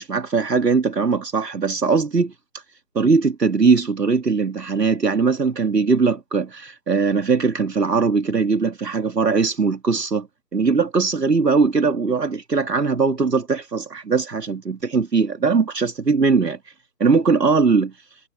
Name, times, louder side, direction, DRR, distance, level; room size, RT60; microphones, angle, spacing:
voice 1, 0.0-2.3 2.9-10.3 10.5-16.6 17.0-17.9, right 4 dB, 85° right, 2.5 m, -20 dB
figure-of-eight pair, 155°, 48 cm